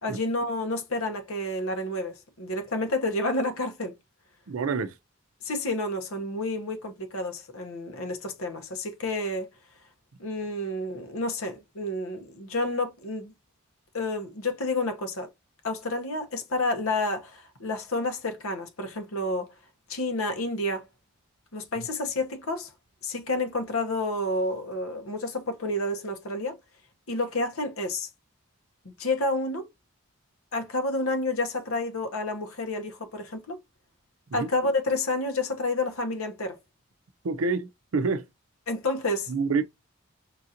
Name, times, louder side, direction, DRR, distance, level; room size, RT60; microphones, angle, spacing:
voice 1, 0.0-3.9 5.4-9.5 10.2-13.3 13.9-15.3 15.6-19.5 19.9-20.9 21.5-22.7 23.0-26.6 27.1-28.1 28.8-29.7 30.5-33.6 34.3-36.6 38.7-39.3, left 2 dB, 90° left, 1.0 m, -30 dB
voice 2, 4.5-4.9 21.8-21.9 34.3-34.5 37.2-38.2 39.3-39.6, right 4 dB, 80° right, 0.5 m, -27 dB
5.8 x 2.5 x 2.7 m
head